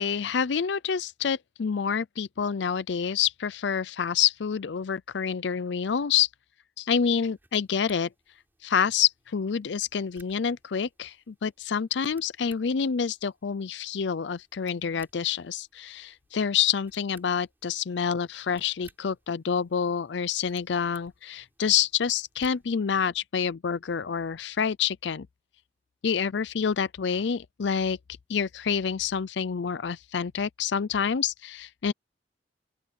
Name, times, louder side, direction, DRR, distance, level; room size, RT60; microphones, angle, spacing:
voice 1, 0.0-6.3 6.8-8.1 8.6-25.3 26.0-28.0 28.3-31.9, left 7 dB, 75° left, 0.5 m, -27 dB
sound 1, 7.0-22.8, right 2 dB, 10° right, 5.3 m, -62 dB
open air
head